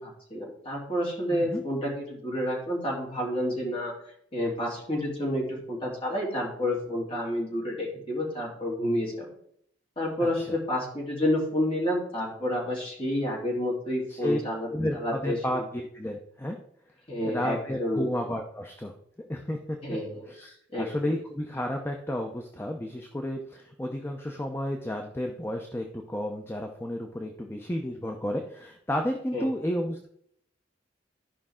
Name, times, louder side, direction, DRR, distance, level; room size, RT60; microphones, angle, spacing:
voice 1, 0.0-3.9 4.3-9.3 10.0-14.7 14.9-15.7 17.1-18.1 19.8-20.2 20.7-21.1 29.3-29.4, left 1 dB, 30° left, -3 dB, 3.4 m, -29 dB
voice 2, 1.3-1.6 10.2-10.6 14.1-14.4 14.7-16.6 17.2-18.9 19.3-19.8 20.3-30.1, left 1 dB, 15° left, 3 dB, 0.7 m, -32 dB
13.0 x 5.3 x 3.7 m, 0.67 s
head